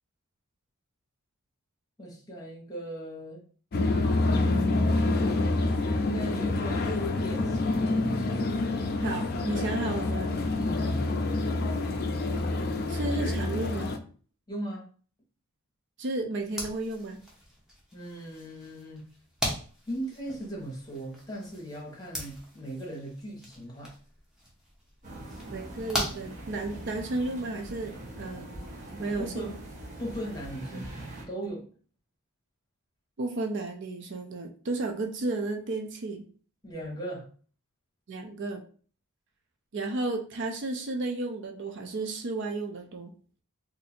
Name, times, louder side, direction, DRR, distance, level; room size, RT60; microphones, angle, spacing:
voice 1, 2.0-3.4 5.8-8.2 10.6-11.0 14.5-14.8 17.9-19.0 19.9-23.9 29.2-29.6 30.0-30.9 31.3-31.6 36.6-37.3, right 1 dB, 20° left, -2 dB, 1.1 m, -38 dB
sound 1, 3.7-14.0, left 2 dB, 45° left, 0.4 m, -27 dB
voice 2, 9.0-10.3 12.9-13.9 16.0-17.2 25.5-28.5 28.9-29.5 33.2-36.2 38.1-38.6 39.7-43.1, right 2 dB, 55° right, 4 dB, 0.5 m, -33 dB
sound 2, 16.4-27.0, equal, ahead, 0.8 m, -40 dB
sound 3, 25.0-31.2, right 1 dB, 35° right, 1.0 m, -42 dB
2.7 x 2.6 x 4.1 m, 0.42 s
head